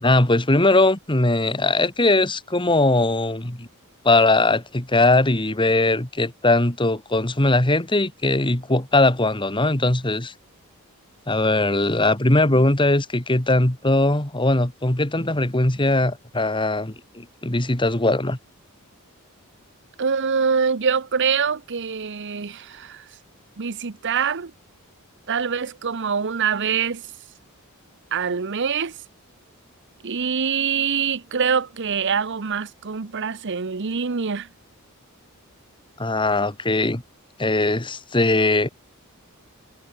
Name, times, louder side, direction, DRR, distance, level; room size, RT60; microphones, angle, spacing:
voice 1, 0.0-3.7 4.0-10.3 11.3-18.4 36.0-37.0 37.4-38.7, left 2 dB, 20° left, 2.1 m, -20 dB
voice 2, 20.0-23.0 23.6-24.5 25.3-27.0 28.1-29.0 30.0-34.5, right 6 dB, 55° right, 0.8 m, -24 dB
head